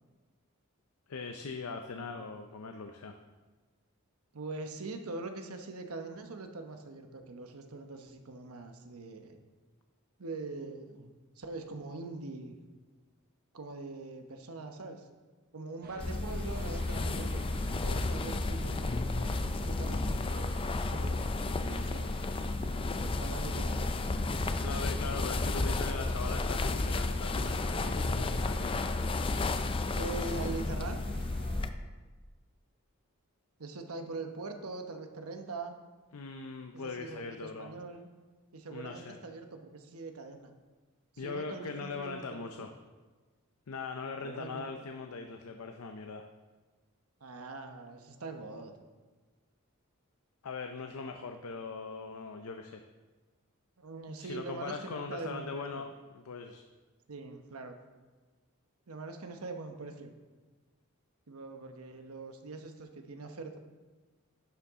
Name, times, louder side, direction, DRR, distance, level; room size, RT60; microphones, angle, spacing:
voice 1, 1.1-3.2 24.6-28.7 36.1-37.7 38.7-39.2 41.2-42.7 43.7-46.3 50.4-52.8 54.1-56.6, left 4 dB, 85° left, 5 dB, 0.6 m, -40 dB
voice 2, 4.3-9.4 10.2-12.6 13.5-15.1 15.5-19.3 19.6-22.2 23.0-24.0 30.0-31.0 33.6-35.8 36.7-38.1 38.5-40.5 41.1-42.7 44.2-44.7 47.2-48.7 53.8-55.9 57.1-57.8 58.9-60.1 61.3-63.6, right 3 dB, 80° right, 6 dB, 0.9 m, -43 dB
sound 1, 15.8-31.6, right 2 dB, 45° right, 0.8 m, -51 dB
sound 2, 16.0-31.7, left 2 dB, 25° left, 0.4 m, -32 dB
11.0 x 6.8 x 3.6 m, 1.3 s
head